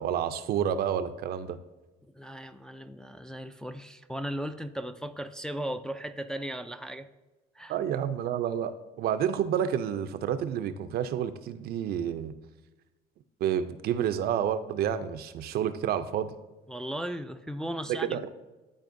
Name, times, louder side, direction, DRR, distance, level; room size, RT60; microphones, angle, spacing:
voice 1, 0.0-1.6 7.7-12.3 13.4-16.3 17.9-18.3, right 9 dB, 65° right, 11 dB, 0.5 m, -29 dB
voice 2, 2.2-7.1 7.6-7.7 16.7-18.3, right 1 dB, 5° left, 7 dB, 0.3 m, -36 dB
12.0 x 4.2 x 2.6 m, 1.1 s
cardioid pair, 110°, 17 cm